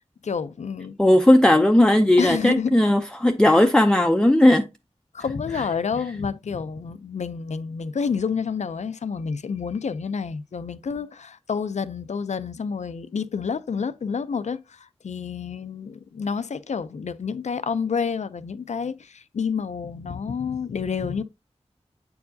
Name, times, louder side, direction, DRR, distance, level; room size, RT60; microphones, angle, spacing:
voice 1, 0.2-1.0 2.2-2.8 3.5-3.6 5.1-21.2, left 6 dB, 80° left, 0.5 m, -29 dB
voice 2, 1.0-4.7, left 1 dB, 5° left, 0.5 m, -17 dB
8.3 x 4.7 x 2.7 m
wide cardioid pair, 75°, 12 cm